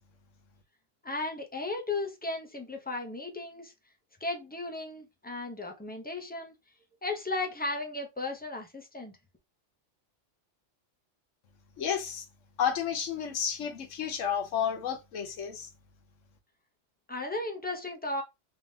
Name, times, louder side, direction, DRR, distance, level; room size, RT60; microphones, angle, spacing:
voice 1, 1.0-3.7 4.2-6.5 7.0-9.1 17.1-18.2, left 2 dB, 10° left, 0.6 m, -35 dB
voice 2, 11.8-12.2 12.6-15.7, left 8 dB, 85° left, 1.2 m, -31 dB
3.5 x 3.4 x 2.7 m
omnidirectional pair, 1.3 m